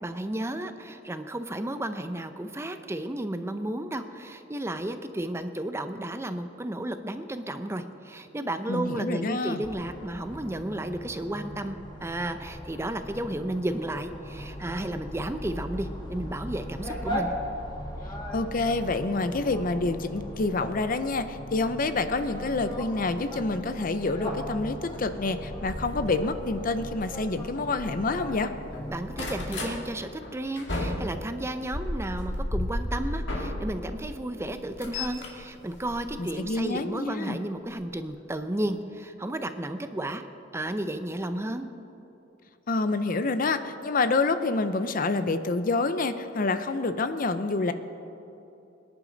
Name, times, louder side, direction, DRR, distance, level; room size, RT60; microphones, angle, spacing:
voice 1, 0.0-17.3 28.9-40.2 40.5-41.7, right 1 dB, 15° right, 9 dB, 0.6 m, -33 dB
voice 2, 8.7-9.6 18.3-28.5 36.2-37.4 42.7-47.7, left 3 dB, 45° left, 11 dB, 0.6 m, -27 dB
sound 1, 9.6-29.3, equal, 25° left, 2.0 m, -38 dB
sound 2, 25.5-28.3 28.6-29.8 30.2-34.0 34.4-36.6 37.6-37.8 38.3-38.4 38.6-38.7, left 1 dB, 70° left, 2.2 m, -34 dB
23.5 x 10.5 x 4.0 m, 2.8 s
head